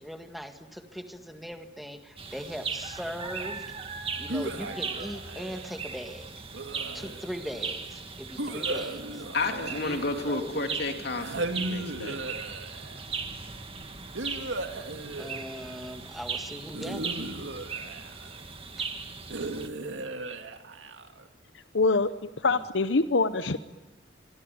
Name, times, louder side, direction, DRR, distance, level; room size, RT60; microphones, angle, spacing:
voice 1, 0.0-3.6 4.2-6.3 6.9-9.2 9.7-10.0 10.3-10.8 11.5-11.6 15.2-17.1, equal, ahead, 6 dB, 2.0 m, -39 dB
sound 1, 2.2-19.7, right 5 dB, 30° right, 2.2 m, -38 dB
sound 2, 4.3-5.8 6.5-7.5 8.4-10.6 11.2-13.0 14.1-15.9 16.7-18.4 19.3-21.3, right 2 dB, 85° right, 2.2 m, -36 dB
voice 2, 9.3-12.2, left 3 dB, 60° left, 5 dB, 2.9 m, -31 dB
voice 3, 21.7-23.6, left 3 dB, 75° left, 12 dB, 0.9 m, -25 dB
24.5 x 24.5 x 9.4 m, 1.1 s
head